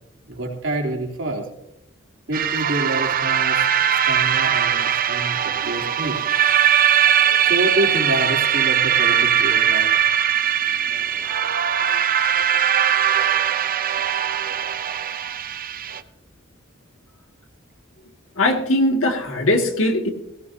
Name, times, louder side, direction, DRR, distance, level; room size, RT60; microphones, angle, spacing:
voice 1, 0.3-1.5 2.3-6.2 7.4-9.9, right 1 dB, 65° right, 0 dB, 3.2 m, -27 dB
sound 1, 2.3-16.0, right 9 dB, 45° right, 0.6 m, -20 dB
voice 2, 18.4-20.1, left 1 dB, 85° left, 3 dB, 2.2 m, -20 dB
17.5 x 17.5 x 2.8 m, 0.86 s
head